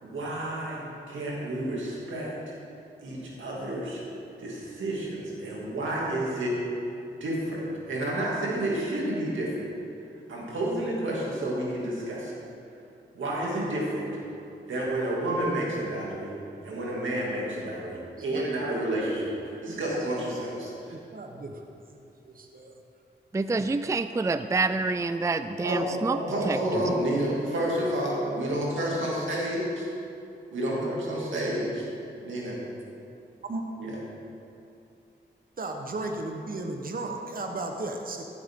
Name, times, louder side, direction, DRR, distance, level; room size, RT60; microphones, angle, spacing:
voice 1, 0.0-2.3 3.0-4.0 4.4-6.6 7.2-9.7 10.3-12.3 13.1-14.1 14.7-16.4 16.6-21.0 25.6-29.9 30.5-31.9 32.2-32.6 33.8-34.0, right 1 dB, 85° right, -5 dB, 2.5 m, -30 dB
voice 2, 21.1-21.5 22.3-22.7 33.5-33.6 35.6-38.2, right 2 dB, 50° right, 3 dB, 1.1 m, -34 dB
voice 3, 23.3-26.2 26.5-26.6, right 3 dB, 15° right, 11 dB, 0.4 m, -27 dB
15.5 x 7.6 x 3.8 m, 2.7 s
cardioid pair, 45°, 20 cm